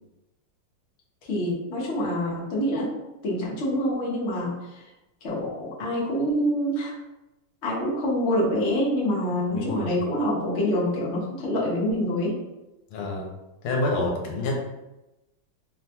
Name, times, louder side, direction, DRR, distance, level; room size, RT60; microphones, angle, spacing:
voice 1, 1.3-2.9 3.2-4.8 5.2-6.9 7.6-12.3, equal, 60° left, -5 dB, 0.7 m, -26 dB
voice 2, 9.5-10.0 12.9-13.3 13.6-14.6, left 2 dB, 85° left, 0 dB, 1.5 m, -27 dB
3.5 x 2.2 x 2.8 m, 0.98 s
omnidirectional pair, 2.4 m